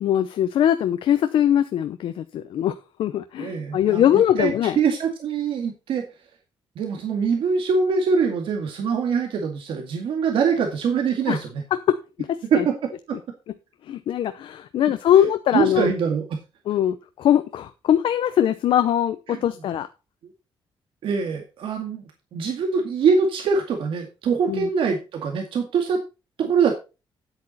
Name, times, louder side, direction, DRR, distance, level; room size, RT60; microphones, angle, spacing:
voice 1, 0.0-4.8 11.3-11.4 11.9-12.6 13.9-15.9 16.7-19.9 24.5-24.7, left 10 dB, 70° left, 0.8 m, -21 dB
voice 2, 3.4-6.0 6.8-11.6 12.5-12.8 13.1-13.2 15.5-16.2 19.3-19.4 20.2-20.3 21.0-26.0 26.4-26.7, right 5 dB, 70° right, 2.2 m, -23 dB
10.0 x 8.4 x 4.1 m
wide cardioid pair, 170°, 9 cm